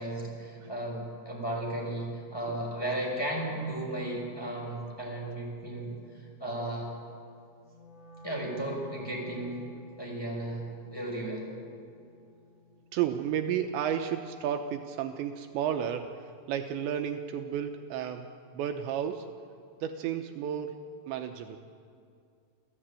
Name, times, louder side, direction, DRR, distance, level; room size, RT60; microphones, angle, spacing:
voice 1, 0.0-6.9 8.2-9.6 10.0-10.6 10.9-11.4, right 1 dB, 5° left, -2 dB, 5.6 m, -35 dB
Wind instrument woodwind instrument, 7.6-13.8, equal, 25° left, 6.1 m, -53 dB
voice 2, 12.9-18.3 18.5-19.3 19.8-21.6, right 9 dB, 80° right, 5 dB, 3.0 m, -32 dB
28.5 x 14.0 x 8.9 m, 2.4 s
omnidirectional pair, 5.3 m